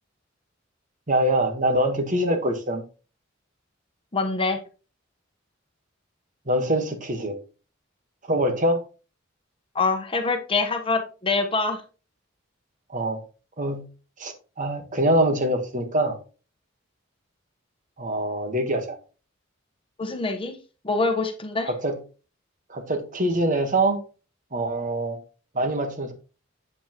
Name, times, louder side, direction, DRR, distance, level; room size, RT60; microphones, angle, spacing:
voice 1, 1.1-2.8 6.5-7.3 8.2-8.8 12.9-13.2 13.6-13.9 14.2-16.2 18.0-19.0 21.6-22.0 22.7-24.0 24.5-25.2 25.5-26.1, right 1 dB, 40° right, 1.5 m, -24 dB
voice 2, 4.1-4.6 9.7-11.8 20.0-20.6 20.8-21.7, left 3 dB, 25° left, 1.1 m, -25 dB
8.3 x 8.2 x 3.0 m
head